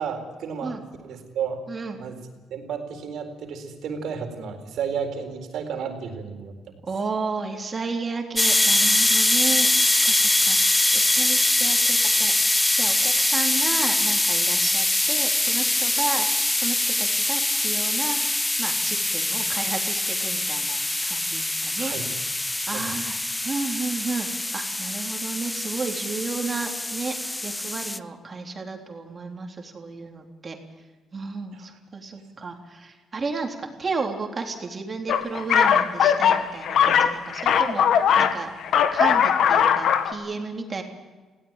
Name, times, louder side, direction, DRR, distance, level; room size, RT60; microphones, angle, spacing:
voice 1, 0.0-0.7 1.0-1.6 2.0-2.2 2.5-6.8 21.8-22.1 22.6-22.8 31.5-31.8, right 6 dB, 75° right, 5 dB, 4.1 m, -32 dB
voice 2, 1.7-2.0 6.9-12.4 12.7-16.3 16.5-18.2 18.6-21.9 22.7-30.6 31.1-38.5 38.9-40.8, right 4 dB, 35° right, 3 dB, 3.5 m, -33 dB
sound 1, 8.4-28.0, left 1 dB, 10° left, 0.7 m, -23 dB
sound 2, 35.1-38.4 38.6-40.1, left 8 dB, 70° left, 1.7 m, -19 dB
20.0 x 17.0 x 9.0 m, 1.3 s
cardioid pair, 90°, 0 cm